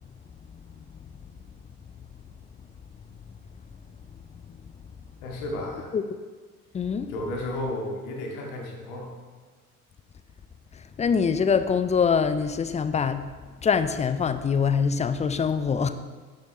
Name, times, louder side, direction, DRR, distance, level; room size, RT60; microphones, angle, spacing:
voice 1, 5.2-5.9 7.1-9.1, left 1 dB, 65° left, -1 dB, 2.1 m, -33 dB
voice 2, 6.7-7.1 11.0-13.3 13.6-15.9, left 6 dB, 15° left, 11 dB, 0.4 m, -24 dB
11.0 x 7.6 x 3.2 m, 1.4 s
figure-of-eight pair, 55°, 45 cm